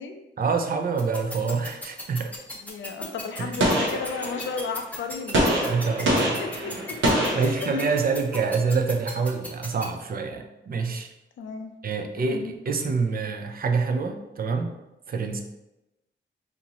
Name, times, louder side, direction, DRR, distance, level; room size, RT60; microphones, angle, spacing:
voice 1, 0.4-2.3 3.4-3.6 5.6-6.3 6.7-6.8 7.3-11.1 11.8-14.7 15.1-15.4, right 4 dB, 50° right, 5 dB, 0.4 m, -26 dB
sound 1, 1.0-9.9, left 1 dB, 10° left, 0.6 m, -36 dB
voice 2, 2.6-5.7 6.2-7.0 7.3-7.6 11.4-11.7 12.3-12.5, left 5 dB, 80° left, 5 dB, 0.4 m, -34 dB
Gunshot gunfire, 3.6-4.7 5.3-8.1, right 1 dB, 90° right, 0.7 m, -25 dB
4.0 x 2.5 x 2.9 m, 0.94 s
wide cardioid pair, 120°, 20 cm